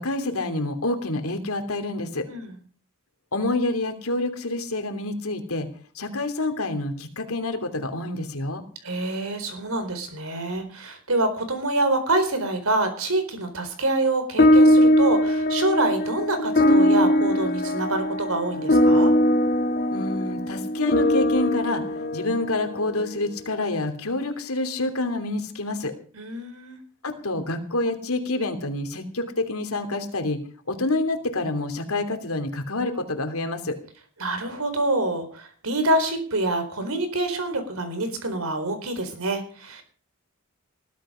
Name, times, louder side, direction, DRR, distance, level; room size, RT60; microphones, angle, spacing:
voice 1, 0.0-2.3 3.3-5.7 5.9-8.6 19.9-25.9 27.0-30.4 30.7-33.8, left 2 dB, 90° left, 6 dB, 3.0 m, -27 dB
voice 2, 8.8-19.1 26.1-26.8 34.2-39.8, right 2 dB, 85° right, 8 dB, 4.3 m, -26 dB
sound 1, 14.4-23.1, left 1 dB, 45° left, 1.8 m, -20 dB
20.0 x 13.0 x 5.1 m, 0.43 s
head